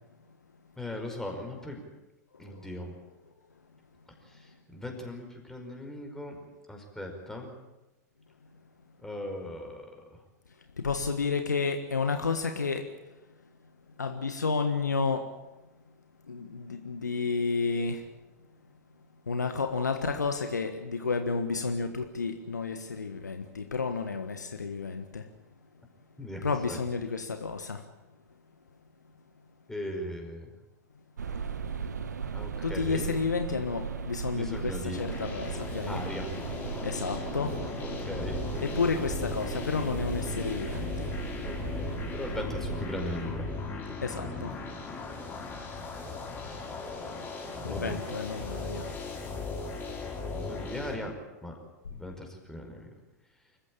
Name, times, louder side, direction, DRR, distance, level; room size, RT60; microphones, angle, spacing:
voice 1, 0.8-1.8 2.4-2.9 4.7-6.4 6.7-7.5 9.0-10.0 26.2-26.4 26.7-26.8 29.7-30.5 32.3-33.1 34.3-35.0 35.9-36.3 37.8-38.4 41.4-43.5 47.7-48.0 50.3-51.1 51.4-51.5 51.9-52.9, left 1 dB, 5° left, 2 dB, 5.2 m, -38 dB
voice 2, 10.8-12.9 14.0-15.3 16.3-18.0 19.3-25.3 26.4-27.8 32.6-36.0 36.8-37.6 38.6-41.1 44.0-44.6 47.6-48.9, left 4 dB, 80° left, 7 dB, 1.5 m, -31 dB
sound 1, 31.2-43.8, right 6 dB, 75° right, 1.5 m, -38 dB
sound 2, 34.9-50.9, left 3 dB, 20° left, 5.5 m, -37 dB
25.5 x 15.0 x 8.8 m, 1.1 s
figure-of-eight pair, 95°, 9 cm